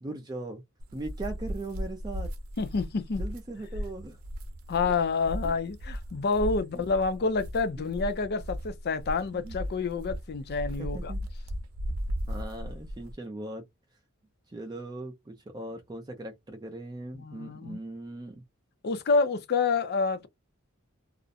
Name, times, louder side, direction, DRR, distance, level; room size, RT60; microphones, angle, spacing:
voice 1, 0.0-0.6 0.9-2.3 3.2-4.2 5.4-5.5 6.7-6.9 7.8-7.9 9.3-9.5 10.8-11.3 12.2-13.6 14.5-18.4, right 2 dB, 20° right, 0.4 m, -39 dB
sound 1, 0.8-13.1, equal, 80° right, 0.6 m, -36 dB
voice 2, 2.6-3.2 4.7-11.1 17.1-17.8 18.8-20.3, left 4 dB, 50° left, 0.4 m, -28 dB
2.4 x 2.0 x 2.6 m
head